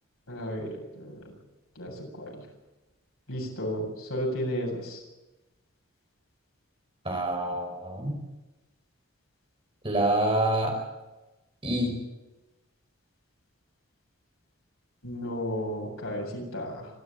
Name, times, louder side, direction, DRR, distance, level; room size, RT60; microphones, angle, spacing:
voice 1, 0.3-1.3 1.8-2.4 3.3-5.0 15.0-16.9, equal, 80° left, 0 dB, 7.6 m, -33 dB
voice 2, 7.0-8.1 9.8-10.8 11.6-12.0, right 1 dB, 25° right, 2 dB, 5.3 m, -26 dB
26.0 x 13.0 x 8.6 m, 1.0 s
head